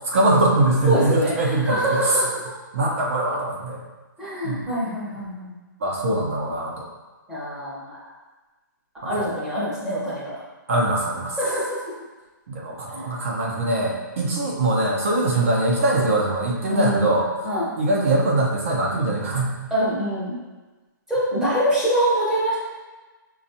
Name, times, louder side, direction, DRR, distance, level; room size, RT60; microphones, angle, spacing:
voice 1, 0.0-2.2 2.7-3.8 4.4-4.6 5.8-6.7 9.0-9.1 10.7-11.4 12.5-17.5 17.8-19.5, right 2 dB, 40° right, -2 dB, 0.6 m, -22 dB
voice 2, 0.8-2.4 4.2-5.5 7.3-8.0 9.0-10.3 11.4-11.8 12.9-13.1 16.7-17.0 17.4-17.7 19.7-20.3 21.1-22.6, equal, 5° right, -10 dB, 0.8 m, -24 dB
5.1 x 2.3 x 2.7 m, 1.2 s
hypercardioid pair, 175°, 11 cm